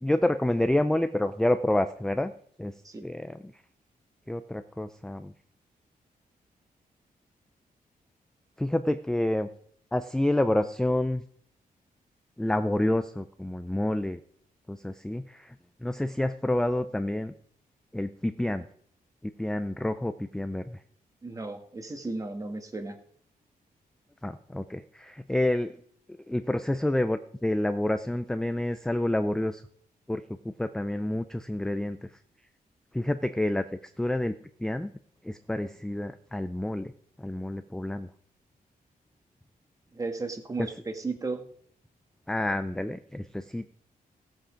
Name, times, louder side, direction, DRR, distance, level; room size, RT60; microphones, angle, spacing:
voice 1, 0.0-2.3 2.6-2.7 3.0-3.4 4.3-5.3 8.6-9.5 9.9-11.2 12.4-14.2 14.7-15.5 15.8-17.3 17.9-18.7 19.2-20.8 24.2-25.8 26.3-29.6 30.1-32.0 32.9-33.7 34.0-34.9 35.2-36.9 37.2-38.1 40.6-40.7 42.3-43.7, left 1 dB, 5° left, 10 dB, 0.4 m, -28 dB
voice 2, 21.2-23.0 39.9-41.4, right 3 dB, 20° right, 6 dB, 1.5 m, -34 dB
16.5 x 7.9 x 5.0 m, 0.63 s
wide cardioid pair, 165°, 15 cm